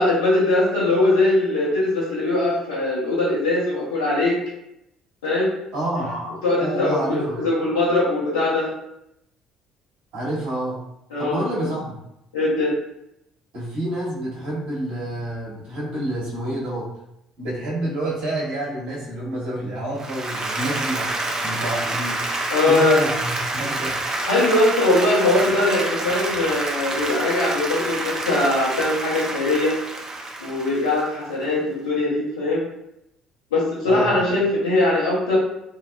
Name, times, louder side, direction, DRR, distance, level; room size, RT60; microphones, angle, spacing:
voice 1, 0.0-4.4 5.2-5.5 5.9-8.7 11.1-11.7 12.3-12.7 22.5-23.0 24.2-29.7 30.4-32.6 33.5-35.4, left 2 dB, 80° left, -7 dB, 0.9 m, -21 dB
voice 2, 5.7-6.1 6.6-7.4 10.1-10.8 11.2-12.0 13.5-16.9 17.4-22.2 22.7-24.0 33.9-34.1, right 1 dB, 65° right, -5 dB, 1.0 m, -28 dB
Applause, 20.0-31.3, right 2 dB, 30° right, 0.5 m, -28 dB
2.8 x 2.1 x 2.3 m, 0.82 s
figure-of-eight pair, 50°, 2 cm